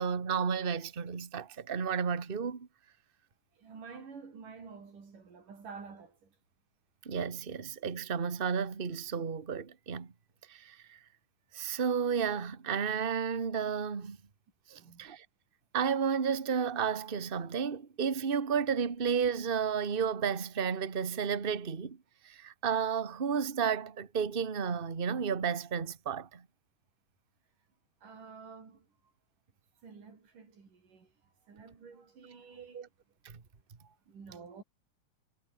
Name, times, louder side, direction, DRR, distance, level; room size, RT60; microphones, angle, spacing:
voice 1, 0.0-2.7 7.0-10.1 10.5-11.0 11.5-14.2 14.7-15.2 15.7-22.0 22.2-26.4 32.5-32.9 33.2-33.3, right 6 dB, 30° right, 1.0 m, -32 dB
voice 2, 3.6-6.3 14.7-15.1 28.0-28.9 29.8-31.1 31.4-32.9 33.8-34.6, right 5 dB, 75° right, 6.7 m, -50 dB
omnidirectional pair, 3.7 m